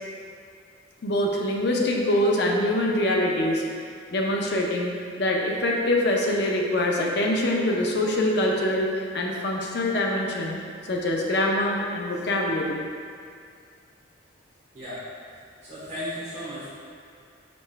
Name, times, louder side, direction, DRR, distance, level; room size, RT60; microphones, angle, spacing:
voice 1, 1.0-3.6 4.1-10.6 10.9-12.8, left 1 dB, 60° left, -1 dB, 0.6 m, -24 dB
voice 2, 14.7-16.7, equal, 35° right, -10 dB, 1.0 m, -36 dB
5.2 x 4.5 x 2.2 m, 2.2 s
head